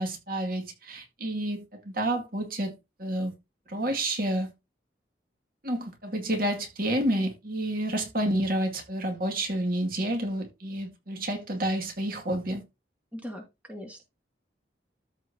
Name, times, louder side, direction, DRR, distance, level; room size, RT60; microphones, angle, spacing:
voice 1, 0.0-3.3 3.7-4.5 5.6-12.6, right 1 dB, 55° right, 2.2 m, -29 dB
voice 2, 13.1-14.0, equal, 10° right, 2.2 m, -40 dB
14.0 x 4.7 x 2.8 m
head